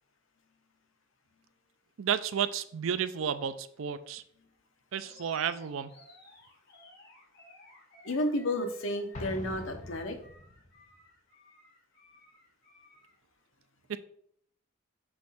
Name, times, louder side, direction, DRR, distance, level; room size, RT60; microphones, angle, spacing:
voice 1, 2.0-4.2 4.9-5.9 13.9-14.0, right 8 dB, 75° right, 13 dB, 0.4 m, -32 dB
Animal, 5.0-13.2, left 2 dB, 55° left, 2.0 m, -57 dB
voice 2, 8.0-10.2, left 1 dB, 75° left, 5 dB, 1.0 m, -31 dB
Explosion, 9.1-10.8, left 2 dB, 35° left, 0.8 m, -43 dB
6.1 x 3.1 x 5.7 m, 0.65 s
head